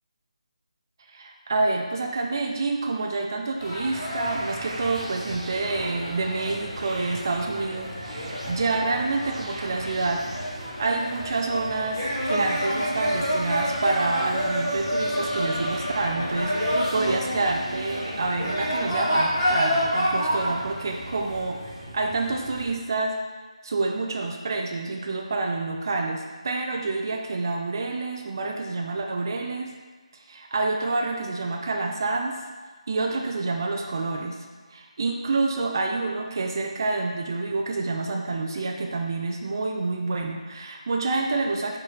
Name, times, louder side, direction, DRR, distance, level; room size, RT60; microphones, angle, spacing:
voice 1, 1.1-10.2 10.8-23.2 23.6-29.7 30.3-32.4 32.9-34.4 34.7-41.8, right 3 dB, 35° right, 2 dB, 0.3 m, -28 dB
sound 1, 3.6-22.7, equal, 20° left, 1.0 m, -29 dB
sound 2, 3.9-21.2, right 1 dB, 85° right, 0.8 m, -42 dB
4.6 x 3.3 x 3.2 m, 1.4 s
figure-of-eight pair, 170°, 4 cm